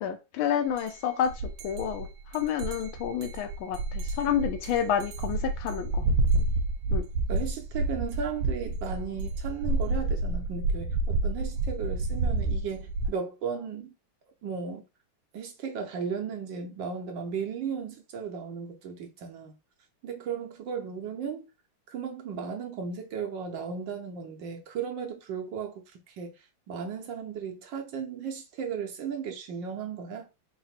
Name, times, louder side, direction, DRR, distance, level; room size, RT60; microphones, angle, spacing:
voice 1, 0.0-1.3 1.6-6.0 6.9-7.0, left 9 dB, 80° left, 1.4 m, -29 dB
sound 1, 0.8-0.9 1.3-13.1, right 2 dB, 85° right, 1.5 m, -29 dB
voice 2, 7.3-13.9 14.4-14.8 15.3-19.5 20.0-21.5 21.9-30.3, right 6 dB, 70° right, 1.3 m, -35 dB
3.9 x 2.1 x 4.2 m
omnidirectional pair, 2.3 m